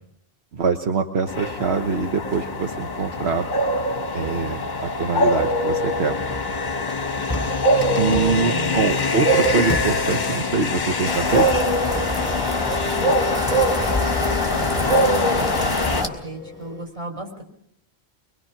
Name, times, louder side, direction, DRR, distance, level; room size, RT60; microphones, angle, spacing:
voice 1, 0.5-3.5 4.1-6.2 8.0-11.5, right 5 dB, 70° right, 5 dB, 1.4 m, -24 dB
sound 1, 1.3-16.0, left 1 dB, 45° left, 1.2 m, -23 dB
Printer, 2.3-5.6 6.3-16.8, left 4 dB, 15° left, 3.8 m, -36 dB
voice 2, 7.8-8.9 12.8-17.4, right 2 dB, 30° right, 0 dB, 4.7 m, -35 dB
sound 2, 11.0-16.1, left 2 dB, 5° right, 3.7 m, -26 dB
24.0 x 22.5 x 5.9 m, 0.71 s
omnidirectional pair, 1.1 m